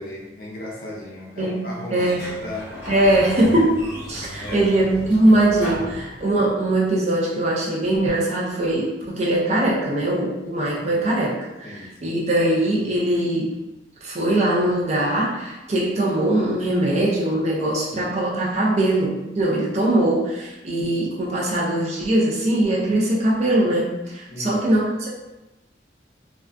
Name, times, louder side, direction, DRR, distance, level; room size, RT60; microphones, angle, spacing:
voice 1, 0.0-2.1 2.4-2.8 3.1-3.2 3.5-3.6 4.4-4.8 10.8-11.1 11.6-12.2 24.3-24.6, left 1 dB, 50° left, -4 dB, 0.6 m, -36 dB
voice 2, 1.9-2.3 2.9-13.6 14.0-25.1, right 1 dB, 35° right, -4 dB, 0.5 m, -21 dB
Sliding door, 2.0-6.7, equal, 15° right, 1.2 m, -35 dB
2.4 x 2.4 x 2.2 m, 1.0 s
head